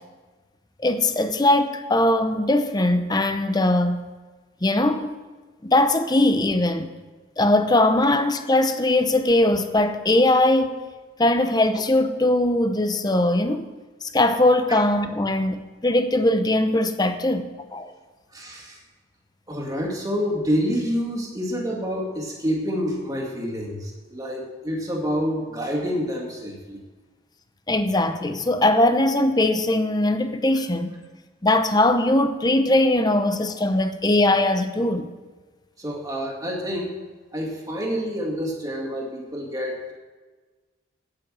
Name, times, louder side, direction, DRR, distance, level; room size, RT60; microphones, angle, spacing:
voice 1, 0.8-4.1 4.6-5.2 5.6-6.9 7.4-10.8 11.2-13.7 14.0-17.5 17.7-17.9 27.7-30.9 31.4-35.1, left 1 dB, 20° left, 0.7 m, -20 dB
voice 2, 18.3-18.8 19.5-26.8 35.8-36.9 37.3-39.9, equal, 15° right, 2.2 m, -28 dB
9.5 x 8.9 x 7.6 m
head